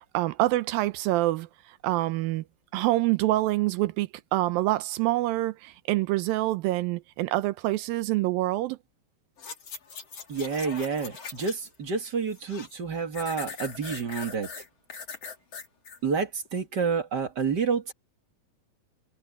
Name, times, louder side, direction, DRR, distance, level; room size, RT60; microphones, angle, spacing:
voice 1, 0.1-2.4 2.7-8.8, right 17 dB, 85° right, 2.5 m, -26 dB
sound 1, 9.4-11.8 12.1-12.8 13.1-16.0 16.5-16.6, left 5 dB, 45° left, 4.1 m, -41 dB
voice 2, 10.3-14.5 16.0-17.9, right 5 dB, 35° right, 1.9 m, -29 dB
omnidirectional pair, 4.1 m